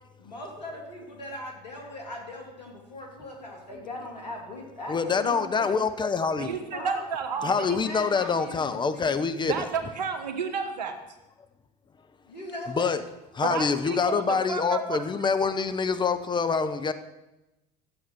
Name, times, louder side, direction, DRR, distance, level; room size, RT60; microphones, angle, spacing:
voice 1, 0.2-5.8 6.7-7.0 7.6-9.2 12.3-13.0, left 1 dB, 90° left, 2.7 m, -39 dB
voice 2, 4.9-6.5 7.4-9.5 12.7-13.0 13.4-16.9, left 5 dB, 20° left, 0.9 m, -26 dB
voice 3, 6.4-7.8 9.4-11.0 13.4-15.0, right 6 dB, 80° right, 1.4 m, -31 dB
13.0 x 7.7 x 6.1 m
hypercardioid pair, 70°, 21 cm